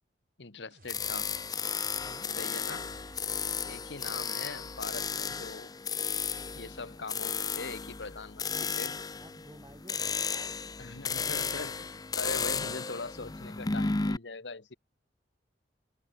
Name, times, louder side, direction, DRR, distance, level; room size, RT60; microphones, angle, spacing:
voice 1, 0.4-1.3 2.4-2.9 3.6-5.7 6.5-8.9 10.8-11.9 12.2-14.7, left 3 dB, 75° left, 1.3 m, -41 dB
sound 1, 0.7-3.5, right 2 dB, 50° right, 3.2 m, -59 dB
sound 2, 0.9-14.2, left 5 dB, 20° left, 0.6 m, -34 dB
voice 2, 1.9-2.3 8.1-8.7 9.1-11.6, right 1 dB, 20° right, 4.9 m, -55 dB
head